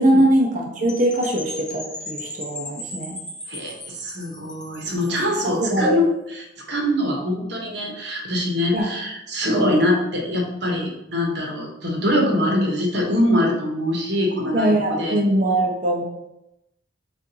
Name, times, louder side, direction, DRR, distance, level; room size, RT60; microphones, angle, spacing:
voice 1, 0.0-3.2 5.0-5.2 5.4-6.0 8.7-8.9 9.5-9.7 12.0-12.7 14.5-16.0, right 1 dB, 40° right, -1 dB, 0.7 m, -21 dB
Percussion / Wind chime, 0.9-5.6, left 1 dB, 5° left, 0.5 m, -37 dB
voice 2, 3.5-15.2, left 1 dB, 60° right, 0 dB, 1.0 m, -23 dB
6.5 x 2.5 x 2.8 m, 0.88 s
head